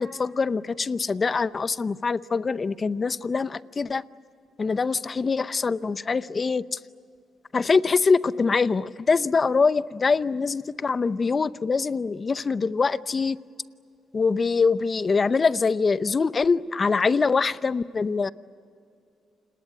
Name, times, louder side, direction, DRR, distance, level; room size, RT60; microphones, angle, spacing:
voice 1, 0.0-4.0 4.6-6.8 7.5-13.4 14.1-18.3, left 4 dB, 35° left, 16 dB, 0.7 m, -24 dB
29.0 x 19.5 x 9.3 m, 2.4 s
cardioid pair, 90°, 0 cm